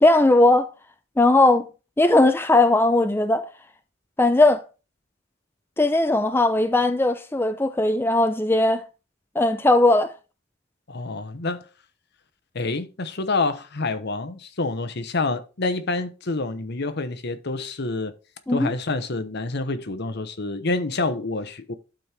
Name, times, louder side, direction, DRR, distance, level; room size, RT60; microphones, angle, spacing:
voice 1, 0.0-0.7 1.2-1.7 2.0-3.5 4.2-4.6 5.8-8.8 9.4-10.1 18.5-18.7, left 2 dB, 10° left, 0.5 m, -18 dB
voice 2, 10.9-11.6 12.5-18.2 18.5-21.7, left 3 dB, 60° left, 1.0 m, -27 dB
12.0 x 4.5 x 3.3 m
head